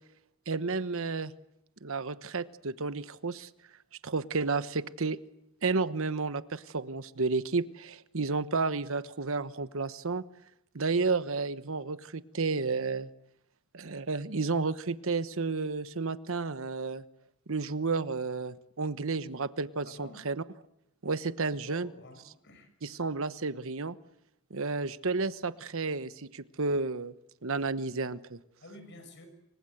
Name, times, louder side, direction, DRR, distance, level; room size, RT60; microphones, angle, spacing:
voice 1, 0.5-1.3 1.8-3.5 4.0-5.2 5.6-10.2 10.7-13.1 13.7-17.0 17.5-20.4 21.0-21.9 22.8-23.9 24.5-27.1 27.4-28.4, right 4 dB, 65° right, 13 dB, 1.1 m, -31 dB
voice 2, 19.8-20.3 21.6-22.7 28.6-29.3, left 2 dB, 55° left, 8 dB, 6.4 m, -50 dB
28.0 x 24.5 x 7.9 m, 0.83 s
head